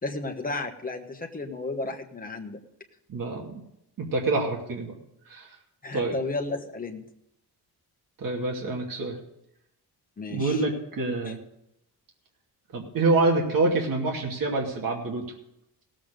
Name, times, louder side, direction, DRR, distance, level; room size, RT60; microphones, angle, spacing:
voice 1, 0.0-2.6 5.8-7.1 10.2-10.6 11.2-11.4, left 3 dB, 20° left, 3 dB, 1.3 m, -33 dB
voice 2, 3.1-3.6 4.0-4.9 5.3-5.5 5.9-6.2 8.2-9.2 10.3-11.4 12.7-15.2, right 3 dB, 55° right, -1 dB, 2.6 m, -26 dB
17.5 x 7.7 x 5.2 m, 0.81 s
wide cardioid pair, 170°, 40 cm